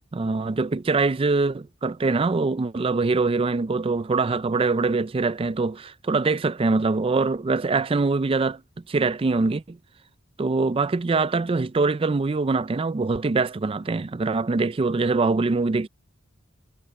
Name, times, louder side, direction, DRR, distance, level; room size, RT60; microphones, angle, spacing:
voice 1, 0.1-8.6 8.9-9.8 10.4-15.9, right 3 dB, 25° right, 0.4 m, -23 dB
head